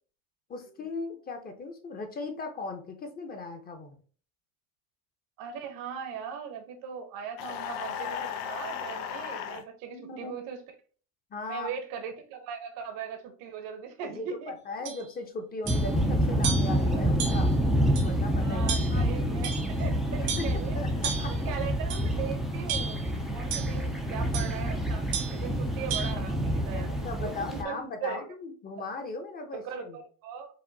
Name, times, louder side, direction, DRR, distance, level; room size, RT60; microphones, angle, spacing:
voice 1, 0.5-4.0 9.9-10.4 11.3-11.7 14.0-17.6 18.0-19.1 20.2-21.3 26.7-30.0, left 3 dB, 25° left, 6 dB, 0.7 m, -38 dB
voice 2, 5.4-10.6 11.5-14.5 16.9-17.0 18.4-20.8 21.4-23.0 23.3-25.0 25.3-28.2 29.5-30.5, right 7 dB, 65° right, 5 dB, 0.9 m, -39 dB
sound 1, 7.4-9.6, left 8 dB, 90° left, 0.7 m, -35 dB
sound 2, 14.9-15.0 15.7-15.9 16.4-16.8 17.2-17.5 18.0-18.1 18.7-19.0 19.4-19.8 20.3-20.6 21.0-21.4 21.9-22.2 22.7-23.1 23.5-23.8 24.3-24.6 25.1-25.4 25.9-26.1, right 7 dB, 85° right, 1.6 m, -34 dB
sound 3, 15.7-27.6, equal, ahead, 0.4 m, -28 dB
4.8 x 2.6 x 2.7 m, 0.42 s
cardioid pair, 135°, 37 cm